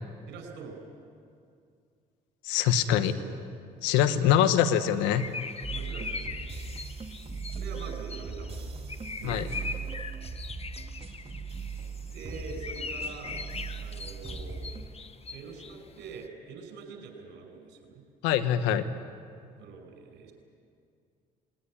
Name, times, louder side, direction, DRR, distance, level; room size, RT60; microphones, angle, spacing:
voice 1, 0.3-0.8 2.8-3.4 4.2-4.5 5.7-6.5 7.5-9.7 12.1-13.4 13.8-14.7 15.3-18.0 19.6-20.3, right 5 dB, 70° right, 4 dB, 5.7 m, -44 dB
voice 2, 2.4-3.1 3.8-5.3 9.2-9.4 18.2-18.8, left 10 dB, 80° left, 11 dB, 1.2 m, -24 dB
sound 1, 4.7-16.3, left 4 dB, 35° left, 1.4 m, -41 dB
sound 2, 5.6-14.9, right 5 dB, 30° right, 2.5 m, -39 dB
20.0 x 19.5 x 9.9 m, 2.3 s
hypercardioid pair, 60°, 19 cm